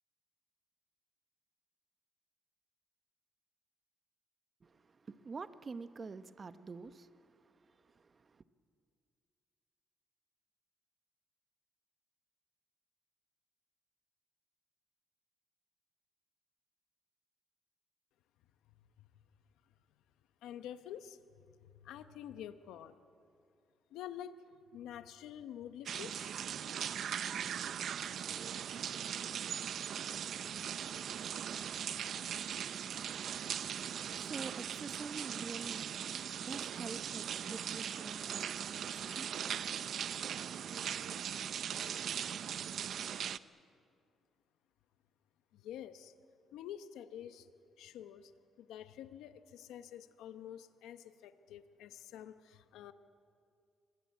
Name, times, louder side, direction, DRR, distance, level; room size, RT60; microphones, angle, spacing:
voice 1, 4.6-8.4 33.6-40.7, right 4 dB, 35° right, 1.0 m, -48 dB
voice 2, 20.4-21.2 21.8-23.0 23.9-26.3 45.5-46.1 46.5-47.5 47.8-48.3 48.6-52.9, left 10 dB, 90° left, 0.9 m, -48 dB
sound 1, 25.9-43.4, right 8 dB, 65° right, 0.6 m, -39 dB
25.5 x 21.0 x 8.4 m
cardioid pair, 90°, 0 cm